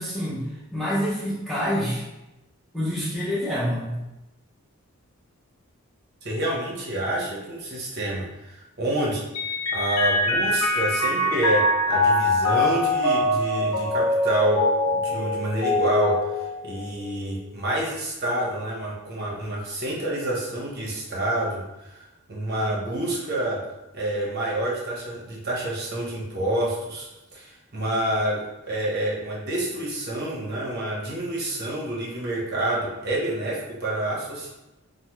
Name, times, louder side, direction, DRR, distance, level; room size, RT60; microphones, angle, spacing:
voice 1, 0.0-2.0 2.7-4.0, equal, ahead, -8 dB, 0.5 m, -27 dB
voice 2, 6.2-9.2 9.7-16.2 16.6-22.0 22.3-23.6 23.9-27.1 27.3-34.5, right 1 dB, 45° right, -3 dB, 0.7 m, -28 dB
Mallet percussion, 9.3-17.1, left 1 dB, 80° left, 0.5 m, -23 dB
3.3 x 2.0 x 2.9 m, 0.98 s
head